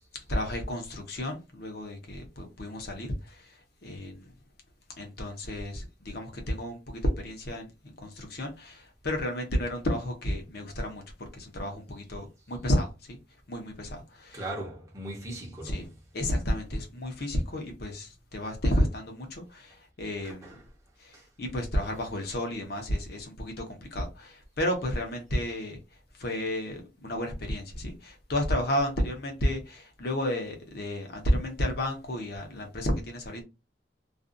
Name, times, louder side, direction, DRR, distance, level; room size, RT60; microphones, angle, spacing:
voice 1, 0.3-4.3 5.0-11.0 11.3-13.2 13.5-14.4 15.6-15.9 16.1-20.5 21.0-25.8 26.2-33.4, left 1 dB, 60° left, 0.8 m, -32 dB
voice 2, 14.3-15.9 20.2-20.6 21.1-21.3, right 1 dB, 20° right, 0.7 m, -39 dB
2.5 x 2.3 x 2.5 m
head